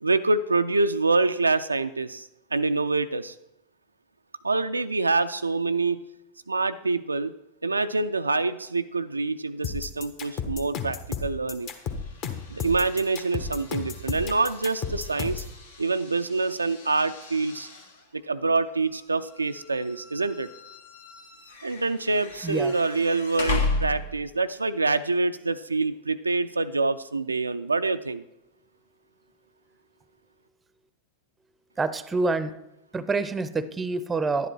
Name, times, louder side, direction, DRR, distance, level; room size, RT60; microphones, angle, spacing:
voice 1, 0.0-3.3 4.4-6.0 6.5-7.3 7.6-11.7 12.5-15.4 15.8-17.7 18.1-20.5 21.6-28.2, right 3 dB, 80° right, 10 dB, 0.4 m, -26 dB
sound 1, 9.6-15.5, left 6 dB, 40° left, 1.3 m, -32 dB
sound 2, 11.6-24.4, left 3 dB, 65° left, 1.5 m, -36 dB
voice 2, 22.4-22.7 31.8-32.5 32.9-34.5, right 3 dB, 15° right, 15 dB, 0.6 m, -27 dB
11.0 x 10.0 x 4.4 m, 0.89 s
figure-of-eight pair, 90°, 0 cm